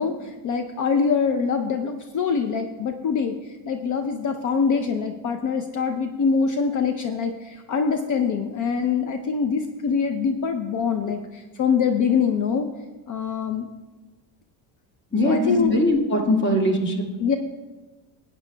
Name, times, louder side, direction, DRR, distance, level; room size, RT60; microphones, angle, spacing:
voice 1, 0.0-3.4 3.6-12.7 13.1-13.7 15.2-15.8 17.2-17.4, left 6 dB, 45° left, 7 dB, 0.6 m, -24 dB
voice 2, 15.1-17.1, left 1 dB, 25° left, 0 dB, 1.9 m, -21 dB
17.0 x 8.9 x 2.2 m, 1.2 s
cardioid pair, 110°, 44 cm